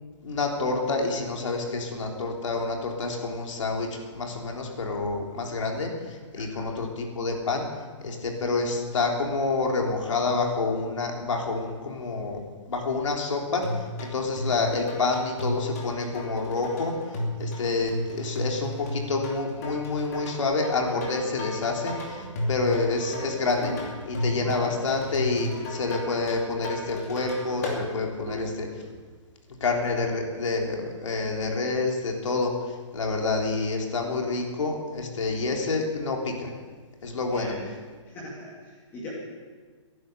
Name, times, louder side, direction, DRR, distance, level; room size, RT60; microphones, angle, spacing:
voice 1, 0.2-7.7 8.0-16.9 17.4-23.7 24.1-28.7 29.6-32.5 32.9-36.5 37.0-37.5, left 3 dB, 75° left, 0 dB, 3.5 m, -28 dB
voice 2, 6.4-6.7 37.3-37.7 38.1-39.1, left 1 dB, 15° left, -5 dB, 2.4 m, -40 dB
sound 1, 13.6-27.8, left 1 dB, 30° left, 2.7 m, -34 dB
sound 2, 21.7-28.6 28.8-29.1, right 1 dB, 20° right, 6.2 m, -42 dB
18.5 x 11.0 x 6.7 m, 1.5 s
hypercardioid pair, 175°, 16 cm